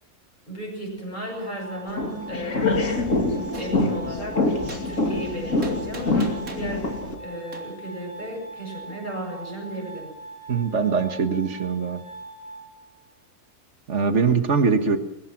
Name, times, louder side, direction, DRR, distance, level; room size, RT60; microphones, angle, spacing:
voice 1, 0.5-2.6 3.5-4.5 4.8-6.9 7.2-10.1, right 1 dB, 30° left, -1 dB, 8.2 m, -34 dB
Glass, 1.3-13.3, right 2 dB, 80° left, 4.9 m, -42 dB
sound 1, 1.9-7.1, left 2 dB, 60° left, 3.2 m, -25 dB
Gunshot gunfire, 3.5-3.7 4.7-4.8 5.6-6.7 7.5-7.6, right 2 dB, 70° right, 3.7 m, -38 dB
voice 2, 10.5-12.0 13.9-15.0, right 5 dB, 55° right, 8 dB, 1.9 m, -22 dB
22.0 x 20.0 x 6.1 m, 0.94 s
omnidirectional pair, 1.5 m